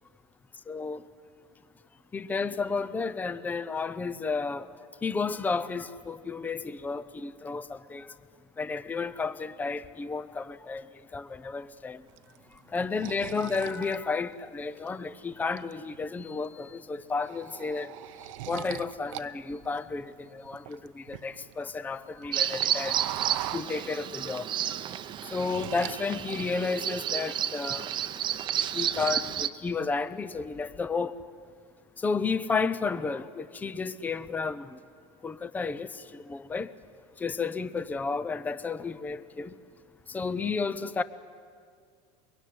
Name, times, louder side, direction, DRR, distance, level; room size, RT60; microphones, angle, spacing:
voice 1, 0.7-1.0 2.1-4.7 5.0-8.1 8.6-10.8 11.1-12.0 12.7-17.9 18.5-23.0 23.5-24.5 25.3-27.9 28.7-31.1 32.0-34.8 35.2-36.7 37.2-39.5 40.1-41.0, left 4 dB, 10° left, 0.6 m, -32 dB
sound 1, 12.2-14.9 15.3-16.1 16.4-16.7 17.0-19.3 19.5-21.6 21.9-24.3 24.6-26.0 26.3-26.9, right 16 dB, 85° right, 0.8 m, -40 dB
Bird vocalization bird call bird song, 22.3-29.5, right 10 dB, 30° right, 0.8 m, -31 dB
24.0 x 22.5 x 9.4 m
supercardioid pair, 150°, 16 cm